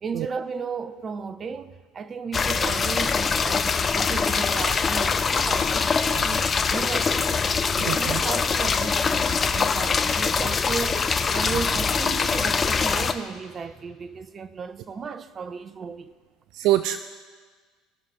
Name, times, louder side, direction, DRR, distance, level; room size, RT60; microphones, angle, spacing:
voice 1, 0.0-7.6 7.9-11.0 11.3-16.1, right 5 dB, 35° right, 0.7 m, -35 dB
sound 1, 2.3-13.1, left 5 dB, 30° left, 0.7 m, -23 dB
voice 2, 7.8-8.2 16.5-17.0, right 14 dB, 65° right, 0.4 m, -24 dB
19.5 x 6.6 x 3.6 m
hypercardioid pair, 70°, 0 cm